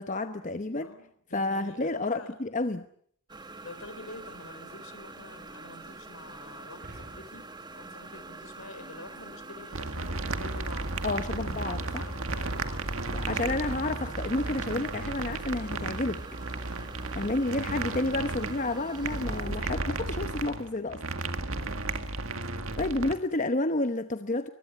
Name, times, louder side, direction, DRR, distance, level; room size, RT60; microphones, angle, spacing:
voice 1, 0.0-0.9 1.3-2.8 11.0-12.0 13.1-16.2 17.1-21.0 22.8-24.5, left 2 dB, 35° left, 9 dB, 1.0 m, -30 dB
voice 2, 0.8-2.3 3.6-7.4 7.7-12.9 16.4-17.3 17.6-17.7 21.6-22.1 22.6-23.0, left 2 dB, 75° left, 12 dB, 3.7 m, -48 dB
sound 1, 3.3-19.6, right 3 dB, 20° right, 1.6 m, -45 dB
sound 2, 6.7-9.2, right 1 dB, 45° right, 5.0 m, -52 dB
sound 3, 9.7-23.1, right 2 dB, 70° right, 2.0 m, -34 dB
24.0 x 21.0 x 8.5 m, 0.63 s
head